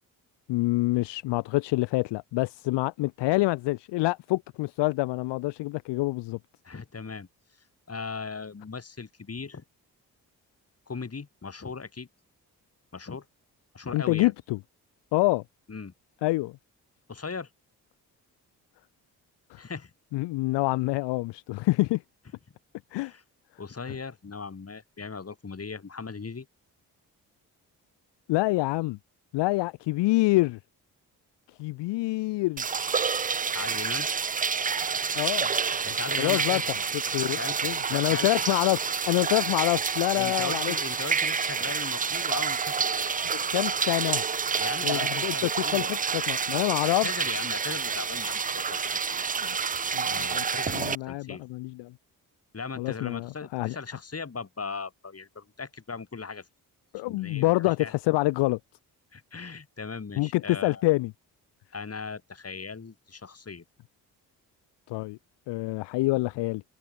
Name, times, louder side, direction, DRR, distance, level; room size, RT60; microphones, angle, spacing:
voice 1, 0.5-6.4 13.9-14.6 15.1-15.4 16.2-16.6 19.5-19.6 20.1-22.0 22.9-23.1 23.9-24.0 28.3-29.0 29.3-30.6 31.6-32.6 35.2-35.5 36.2-36.6 37.1-40.8 43.3-44.2 44.8-47.4 49.4-49.6 49.9-51.9 52.8-53.8 56.9-58.6 60.2-61.1 64.9-65.2 65.5-66.6, left 20 dB, 65° left, 0.6 m, -27 dB
voice 2, 6.6-7.3 7.9-9.6 10.9-12.1 12.9-13.3 13.7-14.3 15.7-15.9 17.1-17.5 19.6-19.9 22.9-23.2 23.6-26.5 33.5-34.1 35.8-36.7 37.2-37.6 37.9-38.3 40.2-43.2 44.6-46.0 46.8-49.2 50.1-51.4 52.5-56.5 57.0-57.9 59.1-60.8 61.7-63.6, left 5 dB, 30° left, 2.4 m, -38 dB
sound 1, 32.6-50.9, right 6 dB, 20° right, 0.5 m, -28 dB
hypercardioid pair, 40°, 46 cm